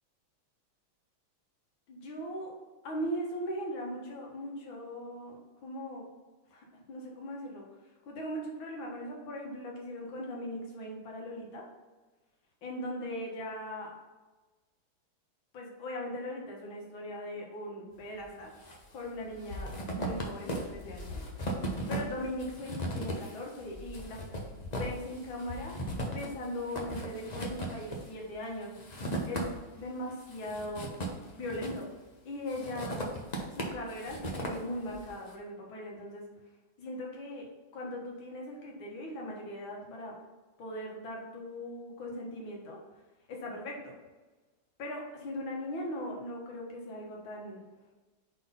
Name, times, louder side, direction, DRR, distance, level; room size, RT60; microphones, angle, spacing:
voice 1, 1.9-2.5 2.8-5.4 5.6-6.0 6.5-7.7 8.1-11.7 12.6-13.9 15.5-18.5 18.9-21.2 21.9-24.2 24.8-25.8 26.1-28.8 29.3-30.9 31.3-31.9 32.3-33.0 33.5-36.3 36.8-40.2 40.6-42.8 43.3-44.0 44.8-47.6, left 1 dB, 75° left, -1 dB, 2.1 m, -39 dB
sound 1, 18.2-18.8 19.1-29.8 30.2-32.0 32.5-35.1, equal, 60° left, 0.4 m, -37 dB
4.8 x 4.0 x 5.4 m, 1.2 s
omnidirectional pair, 2.2 m